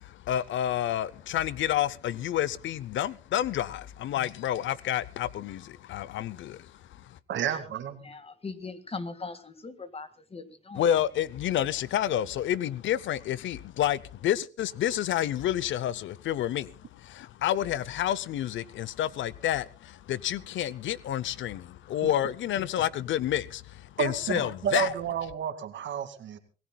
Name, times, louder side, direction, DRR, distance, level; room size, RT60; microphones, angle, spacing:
voice 1, 0.0-7.2 10.7-24.9, left 11 dB, 70° left, 0.7 m, -29 dB
voice 2, 7.3-8.1 22.0-22.1 24.0-26.4, right 8 dB, 70° right, 2.3 m, -31 dB
voice 3, 8.0-10.8, left 4 dB, 30° left, 2.0 m, -40 dB
26.5 x 17.0 x 2.3 m
cardioid pair, 90°, 20 cm